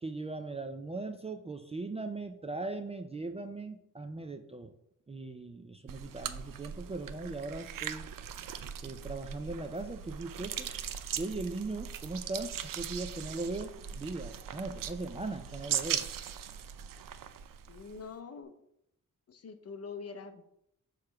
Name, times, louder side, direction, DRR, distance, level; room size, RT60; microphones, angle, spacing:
voice 1, 0.0-4.7 5.1-8.1 8.8-10.7 11.2-16.0, right 3 dB, 20° right, 7 dB, 0.3 m, -39 dB
sound 1, 5.9-18.1, right 9 dB, 80° right, 0.5 m, -39 dB
voice 2, 17.7-18.5 19.3-20.4, left 5 dB, 50° left, 8 dB, 0.6 m, -44 dB
6.6 x 3.1 x 5.8 m, 0.76 s
wide cardioid pair, 170°, 32 cm